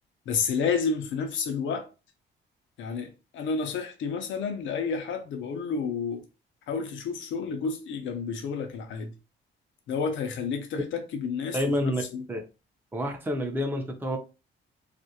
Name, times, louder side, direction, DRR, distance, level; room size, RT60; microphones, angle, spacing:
voice 1, 0.3-1.9 2.8-6.2 6.7-9.1 9.9-12.2, left 5 dB, 75° left, 0.6 m, -30 dB
voice 2, 11.5-12.0 12.3-12.4 12.9-14.2, equal, 10° right, 0.6 m, -28 dB
2.5 x 2.1 x 2.8 m
cardioid pair, 90°, 20 cm